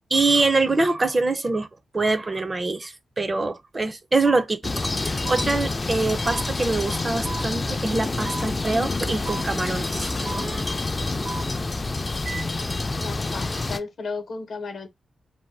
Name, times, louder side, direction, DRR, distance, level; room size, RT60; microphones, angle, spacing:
voice 1, 0.1-1.7 1.9-4.6 5.0-10.8, right 3 dB, 30° right, 0.4 m, -24 dB
sound 1, 4.2-4.4 5.2-5.4 6.2-6.4 7.2-7.4 8.2-8.4 9.2-9.4 10.2-10.4 11.2-11.4 12.2-12.4, right 3 dB, 75° right, 1.3 m, -33 dB
sound 2, 4.6-13.8, left 3 dB, 30° left, 0.3 m, -27 dB
voice 2, 13.0-14.9, left 4 dB, 65° left, 0.7 m, -34 dB
2.6 x 2.2 x 3.2 m
cardioid pair, 75°, 0 cm